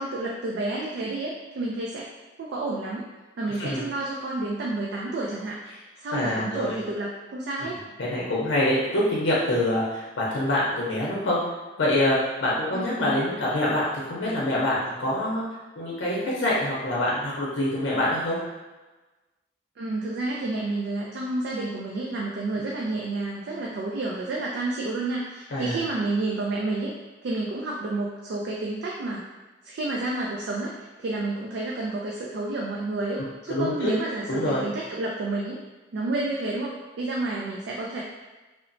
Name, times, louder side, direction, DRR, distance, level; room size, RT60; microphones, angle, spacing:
voice 1, 0.0-2.1 2.4-3.1 3.4-5.6 6.0-7.8 12.7-13.2 19.8-26.9 27.2-29.3 29.6-35.6 35.9-38.0, right 2 dB, 60° right, -3 dB, 0.3 m, -30 dB
voice 2, 6.1-6.8 7.6-7.7 8.0-11.4 11.8-15.4 15.8-18.4 25.5-25.8 33.5-33.9 34.3-34.6, left 1 dB, 85° left, -6 dB, 0.6 m, -25 dB
2.9 x 2.0 x 2.5 m, 1.2 s
head